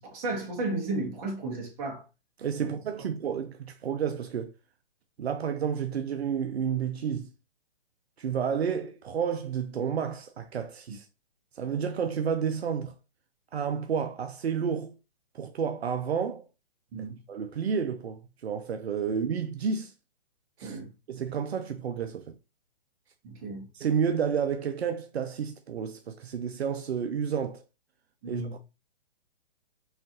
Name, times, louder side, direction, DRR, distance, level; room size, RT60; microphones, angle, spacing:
voice 1, 0.1-2.0 2.6-2.7 16.9-17.2 20.6-20.9 23.2-23.7 28.2-28.6, right 3 dB, 35° right, 1.7 m, -33 dB
voice 2, 2.4-4.5 5.2-7.3 8.2-11.1 11.5-12.9 13.5-14.9 15.3-16.4 17.0-19.9 20.6-20.8 21.1-22.3 23.7-27.6 28.3-28.4, right 7 dB, 80° right, 0.6 m, -30 dB
4.1 x 4.0 x 2.7 m
hypercardioid pair, 135°, 31 cm